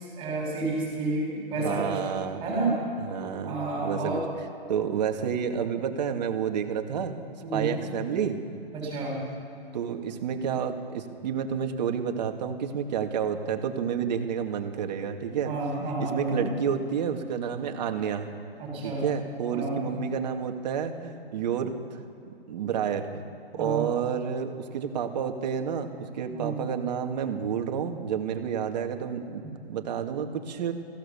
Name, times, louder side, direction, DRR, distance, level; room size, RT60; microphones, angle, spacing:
voice 1, 0.0-1.9 2.4-2.8 3.4-4.2 7.4-7.8 8.7-9.2 15.4-16.5 18.6-19.1 19.5-19.8 23.6-23.9 26.3-26.6, right 2 dB, 20° right, -2 dB, 7.0 m, -30 dB
voice 2, 1.6-2.4 3.0-3.6 3.8-4.2 4.7-7.2 7.5-8.4 9.7-18.3 18.8-22.0 22.5-23.2 23.6-30.7, right 7 dB, 45° right, 4 dB, 2.3 m, -30 dB
24.0 x 16.0 x 7.2 m, 2.8 s
hypercardioid pair, 155°, 30 cm